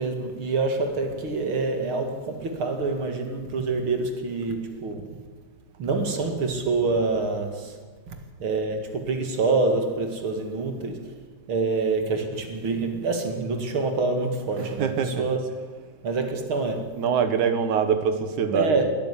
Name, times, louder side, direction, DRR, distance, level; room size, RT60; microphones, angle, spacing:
voice 1, 0.0-5.2 5.8-7.8 8.1-11.1 11.5-15.5 16.0-17.0 18.5-18.9, right 3 dB, 45° right, 2.6 m, -26 dB
voice 2, 14.6-15.3 17.0-18.8, right 7 dB, 70° right, 2.7 m, -24 dB
20.0 x 14.0 x 9.9 m
omnidirectional pair, 3.7 m